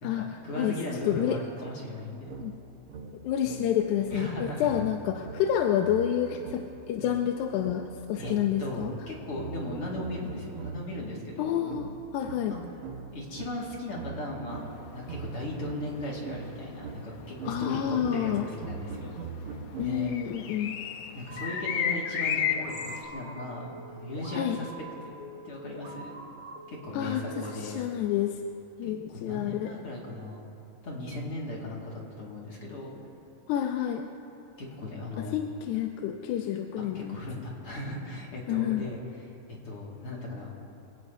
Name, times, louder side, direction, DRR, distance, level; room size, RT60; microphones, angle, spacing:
voice 1, 0.0-2.3 4.1-4.8 8.2-8.3 8.6-11.8 12.5-12.8 13.1-14.7 14.9-19.2 19.8-20.1 21.1-24.7 25.0-25.1 25.4-26.2 26.7-27.8 28.8-30.4 30.8-32.9 34.6-35.4 36.8-39.2 39.6-40.5, left 1 dB, 50° left, -4 dB, 2.8 m, -37 dB
voice 2, 1.0-1.4 2.4-2.5 3.2-8.9 11.4-11.9 12.1-12.6 17.5-18.5 19.8-20.8 24.3-24.6 26.9-28.4 28.8-29.7 33.5-34.1 35.2-37.2 38.5-38.8, left 10 dB, 90° left, 4 dB, 2.1 m, -29 dB
sound 1, 2.3-11.0 11.7-20.3, right 5 dB, 60° right, 1.6 m, -42 dB
sound 2, 14.5-23.0, left 8 dB, 70° left, 1.5 m, -34 dB
sound 3, 21.3-27.5, right 1 dB, 40° right, 2.3 m, -45 dB
25.5 x 17.0 x 2.7 m, 2.8 s
omnidirectional pair, 3.4 m